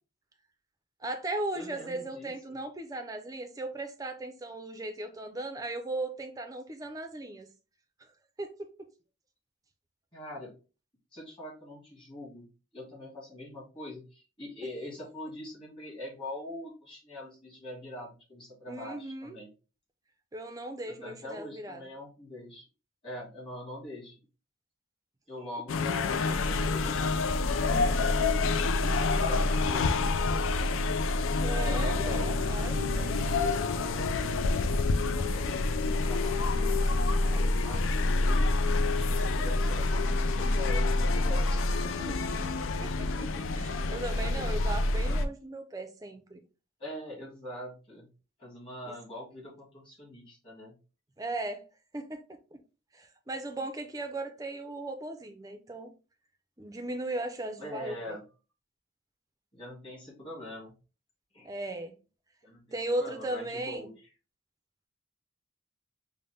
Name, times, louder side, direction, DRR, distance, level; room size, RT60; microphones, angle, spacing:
voice 1, 1.0-7.5 8.0-8.1 8.4-8.5 18.7-19.4 20.3-21.9 28.8-28.9 31.4-33.4 42.0-42.2 42.8-46.4 48.9-49.0 51.2-51.6 51.9-52.2 52.5-52.6 52.9-55.9 56.6-58.2 61.4-61.9 62.7-63.9, right 2 dB, 15° right, 0.5 m, -37 dB
voice 2, 1.5-2.3 10.1-10.5 11.1-12.5 12.7-19.5 20.8-22.6 23.0-24.2 25.3-27.9 29.2-30.1 31.4-32.3 32.9-33.3 35.0-38.5 38.9-42.4 44.3-44.5 46.8-48.1 48.4-50.8 57.6-58.2 59.5-60.7 61.3-61.5 62.4-63.9, left 1 dB, 25° left, 1.8 m, -43 dB
sound 1, 25.7-45.3, left 3 dB, 75° left, 0.4 m, -27 dB
5.3 x 2.1 x 3.3 m
head